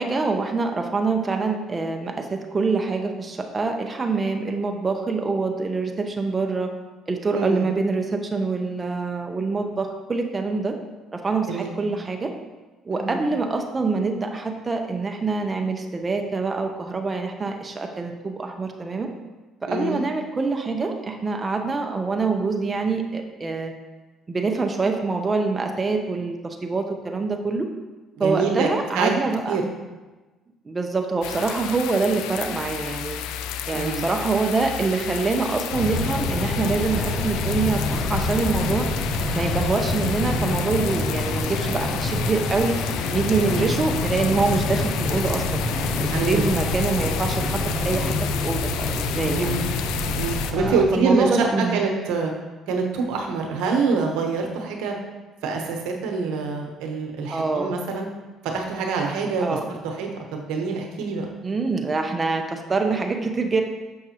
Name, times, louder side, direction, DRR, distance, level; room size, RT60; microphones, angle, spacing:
voice 1, 0.0-6.7 7.1-10.8 11.1-12.3 12.9-19.1 19.6-23.7 24.3-27.7 28.2-29.6 30.7-33.2 33.7-38.9 39.3-42.8 43.1-47.6 47.8-49.5 50.5-51.8 57.3-57.8 59.4-59.7 61.4-63.6, right 3 dB, 30° right, 4 dB, 0.7 m, -25 dB
voice 2, 7.3-7.7 11.5-11.7 12.9-13.2 19.7-20.0 28.2-28.7 28.9-29.1 29.5-29.6 33.7-34.0 43.4-43.7 46.1-46.5 49.2-49.7 50.2-52.3 52.7-54.9 55.4-58.1 58.4-61.2, right 4 dB, 80° right, 2 dB, 1.0 m, -25 dB
sound 1, 31.2-50.5, left 10 dB, 85° left, 0.4 m, -32 dB
sound 2, 35.7-50.8, left 2 dB, 65° left, 0.9 m, -26 dB
6.5 x 5.9 x 2.9 m, 1.2 s
supercardioid pair, 75°, 0 cm